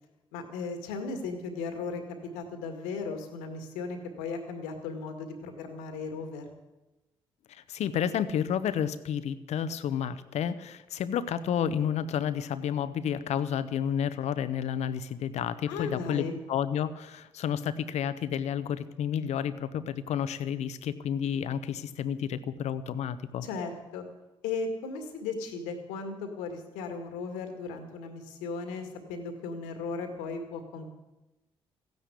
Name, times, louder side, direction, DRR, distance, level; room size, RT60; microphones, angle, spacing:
voice 1, 0.3-6.5 15.7-16.4 23.4-24.0 24.4-30.9, left 4 dB, 80° left, 6 dB, 2.0 m, -36 dB
voice 2, 7.5-23.5, left 8 dB, 65° left, 13 dB, 0.9 m, -31 dB
15.0 x 10.5 x 8.4 m, 1.0 s
hypercardioid pair, 45°, 12 cm